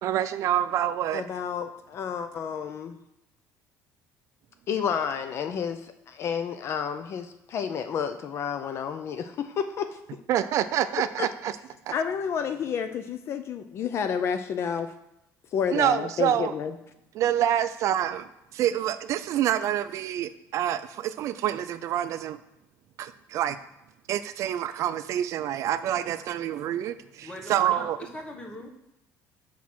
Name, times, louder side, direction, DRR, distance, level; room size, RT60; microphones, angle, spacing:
voice 1, 0.0-1.2 10.3-11.5 11.9-12.0 15.7-16.5 17.2-18.3 18.5-22.4 23.0-23.6 24.1-28.0, right 11 dB, 55° right, 12 dB, 0.3 m, -27 dB
voice 2, 1.1-3.0 4.7-10.2 11.2-11.3 11.9-14.9 15.5-16.7, left 7 dB, 45° left, 9 dB, 0.4 m, -30 dB
voice 3, 27.2-28.7, left 1 dB, 15° left, 2 dB, 1.1 m, -40 dB
6.2 x 4.1 x 6.0 m, 0.88 s
cardioid pair, 150°, 6 cm